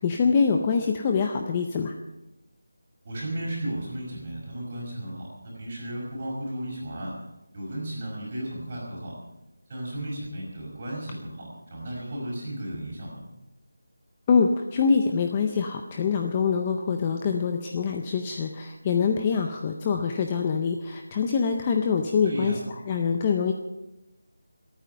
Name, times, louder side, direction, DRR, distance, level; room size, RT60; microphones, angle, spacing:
voice 1, 0.0-1.9 14.3-22.6 22.9-23.5, left 5 dB, 15° left, 4 dB, 0.5 m, -24 dB
voice 2, 3.0-7.1 7.5-9.2 9.7-13.2 22.2-22.6, right 1 dB, 20° right, -4 dB, 5.3 m, -34 dB
25.0 x 9.1 x 5.5 m, 0.97 s
figure-of-eight pair, 180°, 0 cm